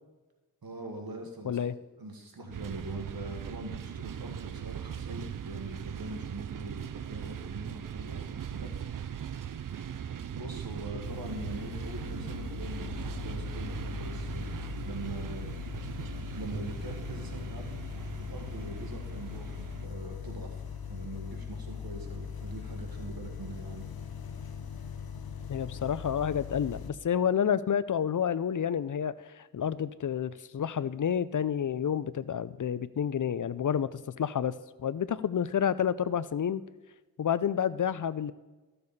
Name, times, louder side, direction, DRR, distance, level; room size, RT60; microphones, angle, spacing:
voice 1, 0.6-1.6 2.0-8.7 10.3-14.5 14.8-15.5 16.3-17.9 18.2-20.6 20.9-23.9, right 2 dB, 85° right, 3 dB, 1.7 m, -42 dB
sound 1, 2.5-19.9, right 8 dB, 65° right, 0.5 m, -40 dB
sound 2, 11.0-26.9, left 7 dB, 85° left, 0.8 m, -40 dB
voice 2, 25.5-34.5 34.8-36.6 37.2-38.3, left 8 dB, 60° left, 16 dB, 0.5 m, -29 dB
13.5 x 6.8 x 4.2 m, 1.2 s
cardioid pair, 40°, 35 cm